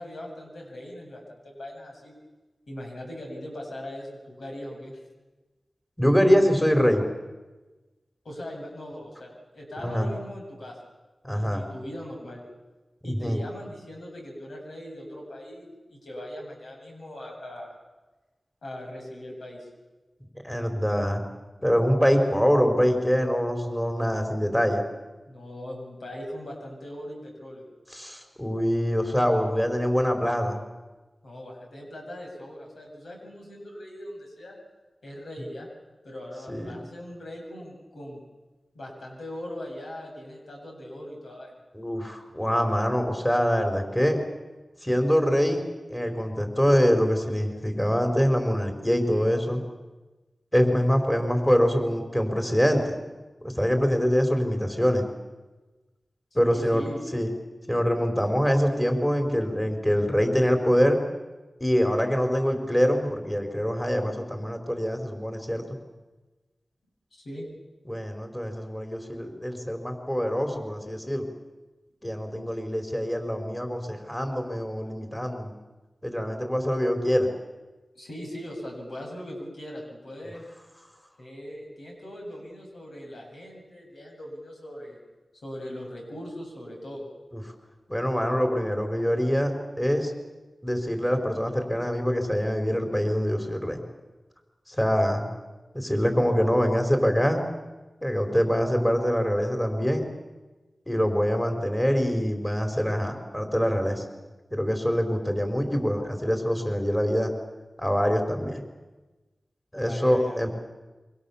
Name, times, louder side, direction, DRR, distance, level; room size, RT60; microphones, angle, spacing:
voice 1, 0.0-2.1 2.7-5.0 8.2-10.8 11.3-12.4 13.0-17.7 18.6-19.7 25.3-27.7 31.2-34.6 35.0-35.7 36.0-38.2 38.7-41.6 56.4-57.0 67.2-67.5 72.2-72.6 75.0-75.1 77.9-80.5 81.2-85.0 85.4-87.1 109.8-110.4, left 1 dB, 90° left, -1 dB, 7.7 m, -40 dB
voice 2, 6.0-7.0 9.8-10.1 11.2-11.6 13.0-13.4 20.4-21.3 21.6-24.8 27.9-30.6 36.5-36.8 41.7-44.2 44.8-45.6 45.9-49.6 50.5-53.0 53.4-55.1 56.3-56.8 57.1-57.3 57.7-61.0 61.6-65.8 67.9-71.2 72.0-75.5 76.0-77.3 87.3-87.4 87.9-89.5 89.8-90.1 90.6-93.8 94.7-95.3 95.7-97.4 98.0-100.0 100.9-104.1 104.5-107.3 107.8-108.6 109.7-110.5, equal, 10° left, 4 dB, 4.4 m, -24 dB
27.0 x 24.5 x 7.2 m, 1.2 s
wide cardioid pair, 55°, 0 cm